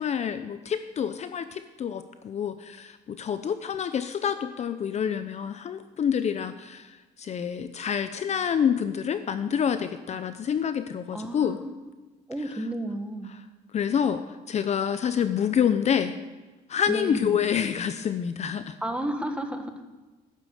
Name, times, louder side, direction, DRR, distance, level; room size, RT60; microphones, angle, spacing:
voice 1, 0.0-11.6 13.7-16.1 16.7-18.8, left 8 dB, 40° left, 11 dB, 0.7 m, -27 dB
voice 2, 11.1-11.7 12.3-13.3 16.9-17.5 18.8-19.7, right 1 dB, 5° right, 6 dB, 1.5 m, -32 dB
11.5 x 10.5 x 6.6 m, 1.2 s
cardioid pair, 110°, 17 cm